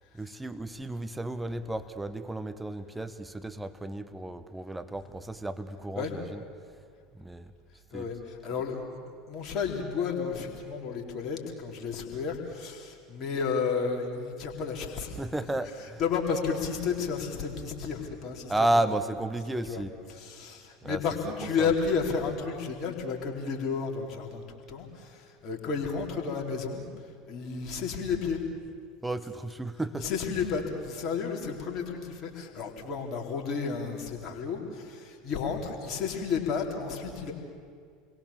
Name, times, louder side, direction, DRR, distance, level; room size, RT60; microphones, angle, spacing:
voice 1, 0.1-6.4 7.2-7.5 7.9-8.1 15.2-16.0 18.5-19.9 20.8-21.0 21.6-21.7 29.0-30.1, right 1 dB, 10° right, 10 dB, 1.3 m, -32 dB
voice 2, 7.9-15.2 16.0-18.5 19.7-19.8 20.1-28.4 29.9-37.3, left 5 dB, 40° left, 1 dB, 4.4 m, -32 dB
30.0 x 22.5 x 7.4 m, 2.1 s
figure-of-eight pair, 75°, 0 cm